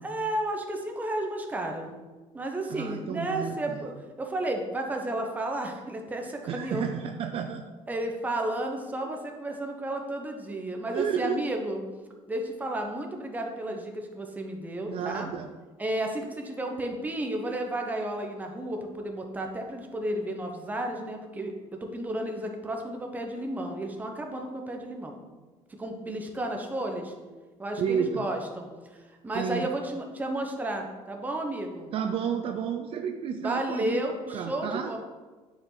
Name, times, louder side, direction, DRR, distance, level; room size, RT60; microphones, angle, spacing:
voice 1, 0.0-1.9 2.3-6.8 7.9-11.8 12.3-15.3 15.8-25.1 25.7-27.1 27.6-28.7 28.9-31.9 33.4-35.0, right 1 dB, 15° right, 2 dB, 1.0 m, -32 dB
voice 2, 2.7-3.8 6.5-7.6 10.9-11.4 14.9-15.5 27.8-28.3 29.3-29.7 31.9-34.9, right 7 dB, 50° right, 6 dB, 0.5 m, -31 dB
9.4 x 5.2 x 4.0 m, 1.3 s
cardioid pair, 145°, 12 cm